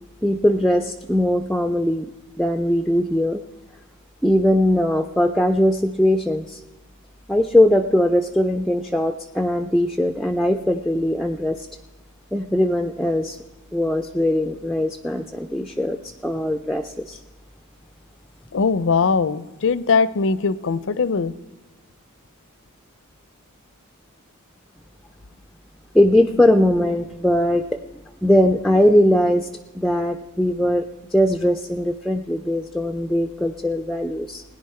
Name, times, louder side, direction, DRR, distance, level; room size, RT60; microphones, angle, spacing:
voice 1, 0.2-2.1 2.4-3.4 4.2-6.6 7.3-11.7 12.3-13.4 13.7-17.2 25.9-27.8 28.2-29.5 29.7-30.8 31.1-34.4, left 1 dB, ahead, 5 dB, 0.4 m, -20 dB
voice 2, 18.5-21.3, left 5 dB, 65° left, 16 dB, 0.5 m, -20 dB
17.0 x 10.0 x 4.3 m, 1.1 s
head